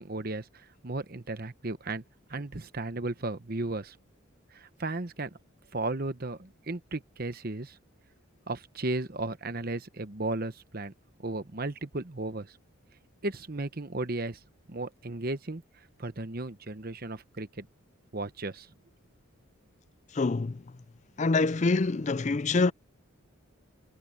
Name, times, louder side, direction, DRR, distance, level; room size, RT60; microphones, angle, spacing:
voice 1, 0.0-2.0 2.3-4.0 4.5-5.3 5.7-7.8 8.5-10.9 11.2-12.5 13.2-14.4 14.7-15.6 16.0-17.7 18.1-18.7, right 2 dB, 45° right, 1.0 m, -35 dB
voice 2, 20.1-20.6 21.2-22.7, left 3 dB, 35° left, 0.4 m, -25 dB
head